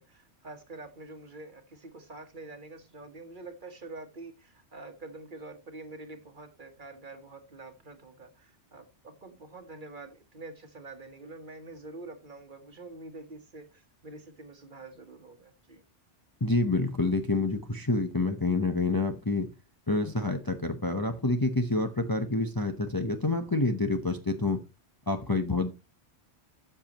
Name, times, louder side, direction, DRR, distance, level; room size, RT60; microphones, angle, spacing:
voice 1, 0.0-15.8, right 2 dB, 45° right, 7 dB, 1.5 m, -46 dB
voice 2, 16.4-19.5 19.9-24.6 25.1-25.7, left 2 dB, 20° left, 6 dB, 0.8 m, -28 dB
12.5 x 7.0 x 3.0 m, 0.26 s
omnidirectional pair, 1.2 m